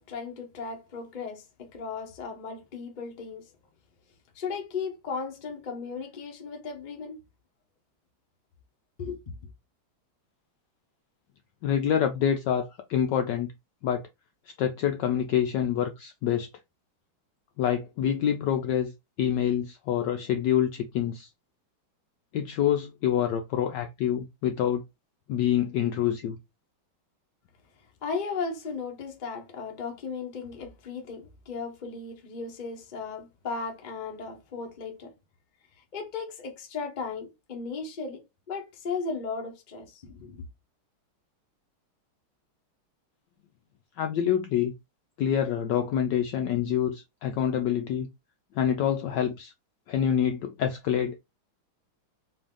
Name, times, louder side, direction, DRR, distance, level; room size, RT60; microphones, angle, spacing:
voice 1, 0.0-3.4 4.3-7.2 9.0-9.2 28.0-35.1 35.9-40.4, left 5 dB, 45° left, 0.6 m, -36 dB
voice 2, 11.6-13.5 13.8-14.1 14.6-16.5 17.6-18.9 19.2-21.3 22.3-24.8 25.3-26.4 44.0-44.7 45.2-48.1 48.5-49.5 49.9-51.2, left 9 dB, 75° left, 1.0 m, -26 dB
4.4 x 2.7 x 3.6 m
omnidirectional pair, 2.3 m